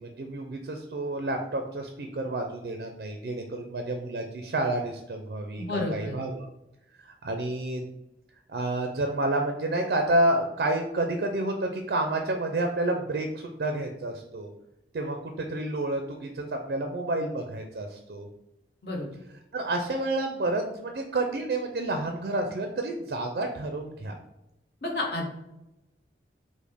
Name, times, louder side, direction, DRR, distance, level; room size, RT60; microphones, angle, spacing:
voice 1, 0.0-6.5 7.0-7.9 8.5-14.5 14.9-18.3 19.5-24.1, right 2 dB, 60° right, 4 dB, 0.4 m, -29 dB
voice 2, 5.6-6.1 18.8-19.1 24.8-25.3, left 2 dB, 60° left, -1 dB, 1.0 m, -30 dB
5.0 x 2.1 x 3.4 m, 0.90 s
head